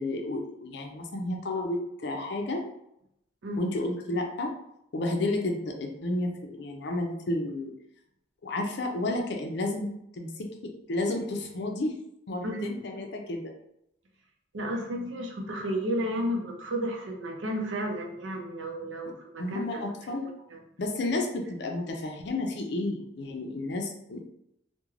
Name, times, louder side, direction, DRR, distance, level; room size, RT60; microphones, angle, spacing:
voice 1, 0.0-2.6 3.6-4.5 4.9-7.7 8.4-9.9 10.1-11.9 12.3-13.5 19.4-20.2 20.8-24.2, left 2 dB, 60° left, 3 dB, 0.4 m, -31 dB
voice 2, 12.4-12.8 14.5-20.2 20.5-20.6, equal, 85° right, 2 dB, 0.6 m, -33 dB
2.4 x 2.1 x 3.1 m, 0.78 s
head